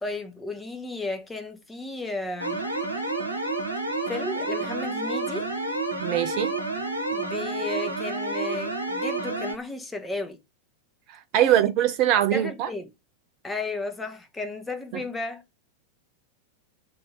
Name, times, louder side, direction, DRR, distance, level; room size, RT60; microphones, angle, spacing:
voice 1, 0.0-2.6 4.1-5.5 7.1-10.4 11.4-11.7 12.3-12.9 13.4-15.4, left 2 dB, 10° left, 0.8 m, -34 dB
sound 1, 2.4-9.6, right 2 dB, 90° right, 1.0 m, -29 dB
voice 2, 6.0-6.6 11.1-12.7, right 11 dB, 40° right, 0.4 m, -22 dB
2.7 x 2.7 x 4.3 m
figure-of-eight pair, 90°, 0 cm